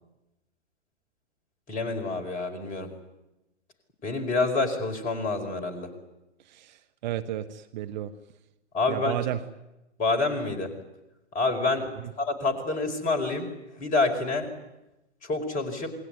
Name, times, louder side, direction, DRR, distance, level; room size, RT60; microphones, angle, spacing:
voice 1, 1.7-2.9 4.0-5.9 8.7-9.2 10.0-10.7 11.3-11.9 12.2-13.5 13.8-14.5 15.2-15.9, left 3 dB, 20° left, 4 dB, 5.0 m, -27 dB
voice 2, 6.5-8.1 8.9-9.4, right 12 dB, 40° right, 8 dB, 1.3 m, -32 dB
28.0 x 21.5 x 9.6 m, 0.95 s
figure-of-eight pair, 115°, 35 cm